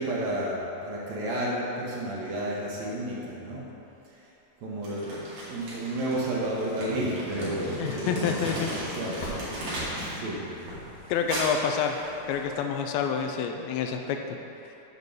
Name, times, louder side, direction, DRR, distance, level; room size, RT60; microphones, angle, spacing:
voice 1, 0.0-3.7 4.6-9.2 10.1-10.5, right 1 dB, 75° right, -5 dB, 1.6 m, -31 dB
Crumpling crinkling, 4.8-10.2 10.5-12.5, right 1 dB, 55° right, 3.5 m, -36 dB
voice 2, 7.8-8.7 9.6-9.7 11.1-12.0 12.3-14.4, left 7 dB, 80° left, 4 dB, 2.2 m, -28 dB
sound 1, 9.2-10.3 14.2-14.3, equal, 55° left, 2.3 m, -38 dB
8.3 x 5.2 x 6.5 m, 2.9 s
omnidirectional pair, 4.7 m